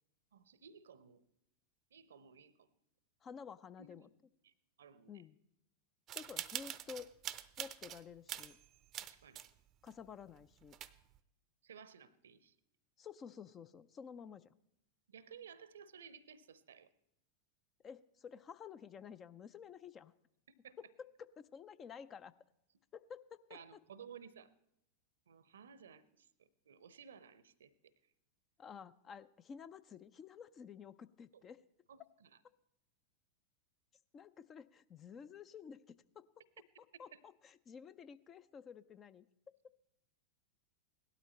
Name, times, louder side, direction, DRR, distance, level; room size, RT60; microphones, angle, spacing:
voice 1, 0.3-1.2 1.9-2.7 3.8-4.1 4.4-4.5 4.8-5.2 9.0-9.4 11.6-12.5 15.1-16.9 20.6-20.8 23.5-24.5 25.3-27.7 31.3-31.4 31.9-32.3 37.1-37.2, right 7 dB, 65° right, 18 dB, 0.8 m, -56 dB
voice 2, 3.2-4.1 5.1-5.4 6.1-7.1 7.6-8.6 9.8-10.8 13.0-14.5 17.8-20.1 20.8-22.3 22.9-23.8 28.6-31.6 34.1-36.3 37.0-39.3, left 7 dB, 25° left, 15 dB, 0.5 m, -52 dB
sound 1, 6.1-8.0 8.3-9.5 9.9-10.0 10.4-10.5 10.7-11.2, right 12 dB, 30° right, 0.6 m, -44 dB
17.5 x 12.5 x 4.3 m, 0.81 s
figure-of-eight pair, 90°, 0 cm